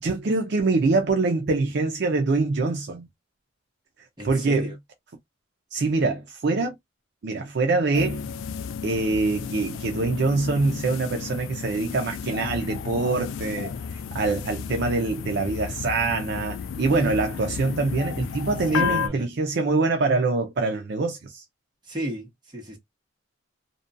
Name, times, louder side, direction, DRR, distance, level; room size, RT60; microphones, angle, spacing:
voice 1, 0.0-3.1 4.2-4.7 5.7-6.8 7.2-8.2 8.8-13.7 14.1-21.4, right 3 dB, 55° right, 0.4 m, -24 dB
voice 2, 4.2-4.8 18.7-19.3 21.8-22.8, equal, 20° right, 1.0 m, -33 dB
sound 1, 7.9-19.1, left 6 dB, 75° left, 0.3 m, -32 dB
2.5 x 2.2 x 2.5 m
head